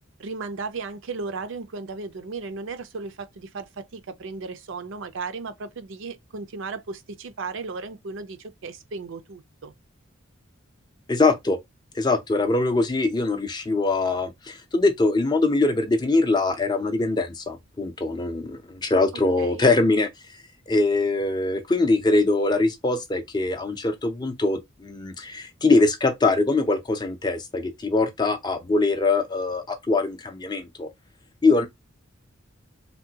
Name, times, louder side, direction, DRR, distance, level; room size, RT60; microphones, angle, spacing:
voice 1, 0.2-9.7 19.4-19.6, right 4 dB, 65° right, 0.5 m, -35 dB
voice 2, 11.1-11.6 12.0-20.1 20.7-30.9 31.4-31.7, left 3 dB, 20° left, 0.4 m, -22 dB
3.5 x 2.2 x 2.8 m
head